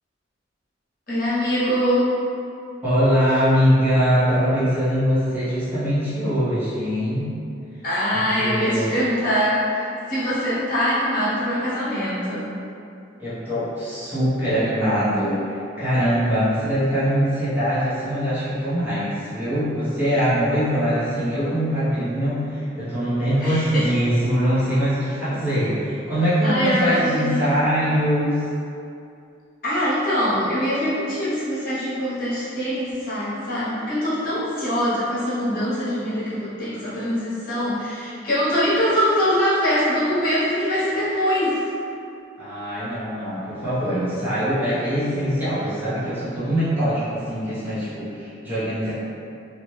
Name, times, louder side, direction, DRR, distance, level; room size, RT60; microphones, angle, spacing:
voice 1, 1.1-2.1 7.8-12.5 23.4-23.9 26.4-27.6 29.6-41.6, equal, 50° left, -12 dB, 1.1 m, -23 dB
voice 2, 2.8-7.2 8.1-8.9 13.2-28.4 42.4-48.9, equal, 10° right, -14 dB, 1.0 m, -22 dB
2.7 x 2.4 x 3.1 m, 2.6 s
head